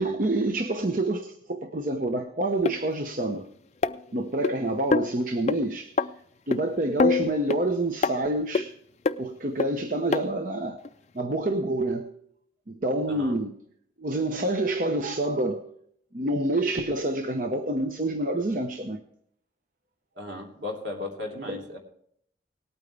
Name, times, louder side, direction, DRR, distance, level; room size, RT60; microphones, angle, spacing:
voice 1, 0.0-3.5 4.1-5.9 6.5-8.7 9.2-10.8 11.1-12.1 12.7-13.5 14.0-15.6 16.1-19.0 21.5-21.6, right 2 dB, 45° right, 0.8 m, -27 dB
sound 1, 2.7-2.8 3.8-4.5 4.9-5.1 5.5-5.6 6.0-6.1 6.5-6.6 7.0-7.6 8.0-8.2 8.6-8.7 9.1-9.2 9.6-9.7 10.1-10.2 10.9-11.0, left 4 dB, 40° left, 0.4 m, -24 dB
voice 2, 20.1-21.8, left 2 dB, 75° right, 3.0 m, -36 dB
19.0 x 9.0 x 3.4 m
head